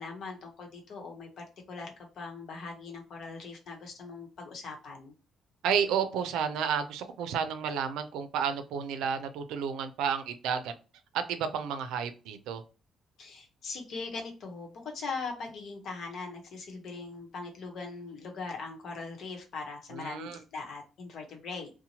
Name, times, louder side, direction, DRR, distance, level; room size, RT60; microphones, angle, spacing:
voice 1, 0.0-5.1 13.2-21.7, left 4 dB, 65° left, 1 dB, 0.9 m, -40 dB
voice 2, 5.6-10.7 11.3-12.6 19.9-20.4, right 7 dB, 90° right, 8 dB, 0.4 m, -31 dB
2.8 x 2.1 x 2.8 m, 0.32 s
cardioid pair, 90°, 0 cm